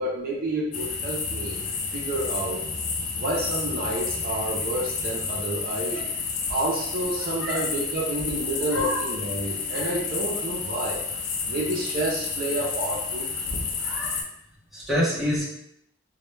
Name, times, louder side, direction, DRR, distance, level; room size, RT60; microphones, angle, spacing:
voice 1, 0.0-1.6 1.9-2.6 3.2-6.0 6.5-11.0 11.5-13.3, right 1 dB, 50° right, -3 dB, 0.4 m, -29 dB
sound 1, 0.7-14.2, left 5 dB, 90° left, 0.4 m, -30 dB
voice 2, 7.2-7.6 8.7-9.0 13.8-14.3 14.7-15.4, equal, ahead, -8 dB, 0.7 m, -28 dB
2.1 x 2.1 x 3.0 m, 0.76 s
head